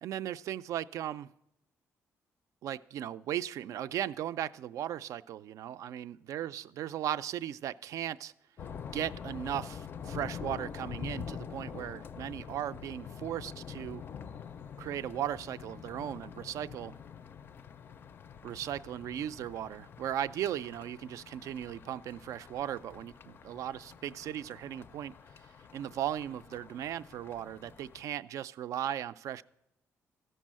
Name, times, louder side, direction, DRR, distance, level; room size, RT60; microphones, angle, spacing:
voice 1, 0.0-1.3 2.6-8.3 8.9-14.0 14.8-17.0 18.4-25.1 25.7-29.4, right 11 dB, 75° right, 15 dB, 0.4 m, -37 dB
sound 1, 8.6-28.0, left 7 dB, 40° left, 0.4 m, -46 dB
14.5 x 5.4 x 7.4 m, 0.83 s
cardioid pair, 160°, 6 cm